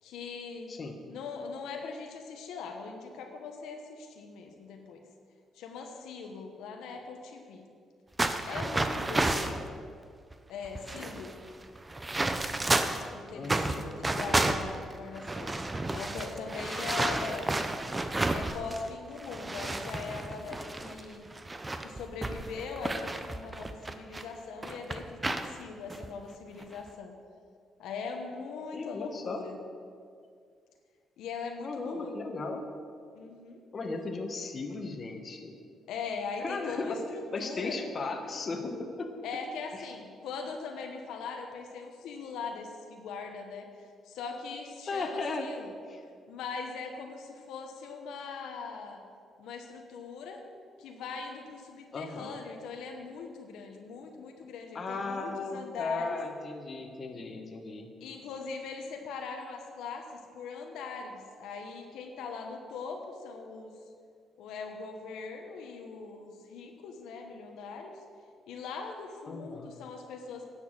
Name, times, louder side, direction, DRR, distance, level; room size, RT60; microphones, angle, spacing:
voice 1, 0.0-0.7 1.1-5.0 5.5-7.6 8.5-9.5 10.5-11.3 13.1-15.5 15.9-17.6 18.3-21.3 21.8-27.1 27.8-29.6 31.2-32.1 33.1-33.6 35.9-37.8 39.2-45.7 46.3-49.0 49.4-50.4 50.8-56.1 58.0-63.7 64.4-67.9 68.5-70.5, left 5 dB, 85° left, 3 dB, 1.1 m, -40 dB
voice 2, 0.7-1.0 9.2-9.8 13.3-14.6 28.7-29.4 31.6-32.6 33.7-35.5 36.4-37.0 37.3-38.7 39.0-39.1 39.7-39.9 44.9-45.5 45.9-46.0 51.9-52.4 54.7-57.9 69.3-69.7, left 3 dB, 40° left, 4 dB, 1.4 m, -36 dB
sound 1, 8.2-9.6 10.3-10.4 10.6-13.1 13.4-18.9 19.2-24.2 24.6-25.5 25.9-26.1 26.6-26.9, right 2 dB, 20° right, 0.8 m, -31 dB
10.5 x 7.2 x 7.4 m, 2.2 s
cardioid pair, 90°, 0 cm